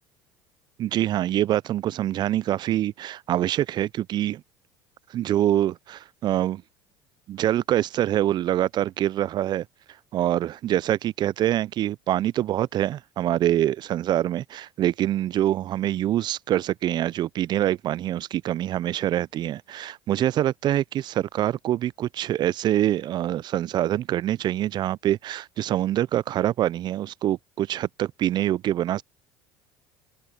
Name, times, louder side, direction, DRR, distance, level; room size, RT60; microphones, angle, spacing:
voice 1, 0.8-4.4 5.1-6.6 7.3-9.7 10.1-29.0, right 12 dB, 50° right, 0.5 m, -25 dB
hypercardioid pair, 70°, 10 cm